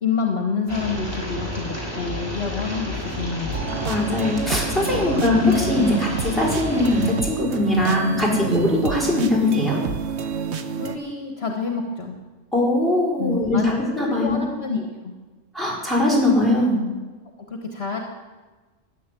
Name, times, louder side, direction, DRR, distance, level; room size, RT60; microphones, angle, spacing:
voice 1, 0.0-3.7 4.8-5.2 8.4-8.6 10.8-12.2 13.2-13.7 14.0-15.1 17.4-18.0, left 5 dB, 55° left, 3 dB, 1.7 m, -28 dB
sound 1, 0.7-7.1, left 1 dB, 20° right, 4.0 m, -31 dB
sound 2, 3.5-11.0, right 6 dB, 60° right, 1.2 m, -29 dB
voice 2, 3.8-9.8 12.5-14.4 15.5-16.8, left 1 dB, ahead, -3 dB, 4.9 m, -21 dB
13.5 x 10.0 x 8.4 m, 1.3 s
omnidirectional pair, 1.3 m